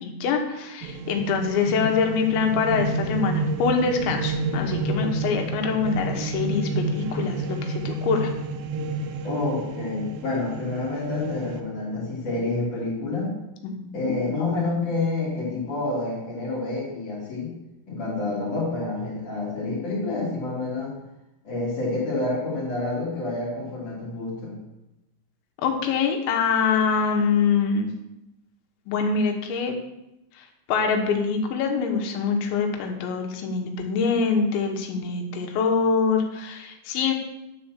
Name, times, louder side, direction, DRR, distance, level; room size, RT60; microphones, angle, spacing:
voice 1, 0.0-8.3 13.6-14.1 25.6-27.9 28.9-29.8 30.4-37.1, left 5 dB, 90° left, 2 dB, 3.6 m, -24 dB
sound 1, 0.8-11.6, right 3 dB, 80° right, 2.9 m, -30 dB
voice 2, 9.2-13.3 13.9-17.6 17.9-21.0 21.4-24.6, left 2 dB, 50° left, -7 dB, 3.6 m, -28 dB
11.5 x 4.5 x 7.4 m, 0.93 s
omnidirectional pair, 5.1 m